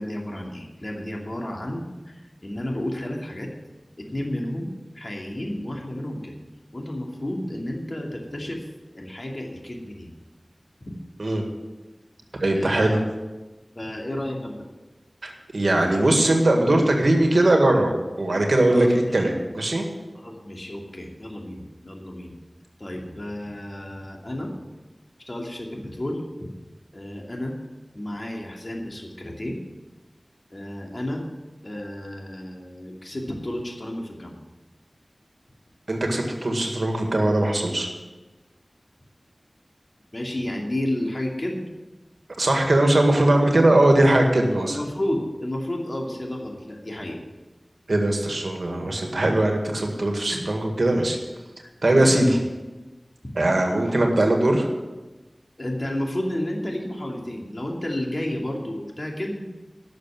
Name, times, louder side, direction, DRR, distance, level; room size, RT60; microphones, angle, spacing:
voice 1, 0.0-3.5 4.0-4.7 4.9-6.4 6.7-8.7 8.9-10.1 10.8-10.9 12.5-13.0 13.7-14.7 18.7-19.3 20.1-22.3 22.8-24.5 25.3-26.2 26.9-27.5 27.9-29.6 30.5-31.2 31.6-34.4 40.1-41.7 44.7-47.2 50.3-50.4 51.6-51.7 52.0-52.1 55.6-59.5, left 1 dB, 45° left, 0 dB, 2.6 m, -31 dB
voice 2, 12.4-13.0 15.2-18.9 19.1-19.8 35.9-37.9 42.4-44.8 47.9-51.2 51.8-52.4 53.4-54.7, right 1 dB, 70° right, 2 dB, 2.0 m, -20 dB
12.0 x 6.6 x 8.9 m, 1.2 s
wide cardioid pair, 40°, 0 cm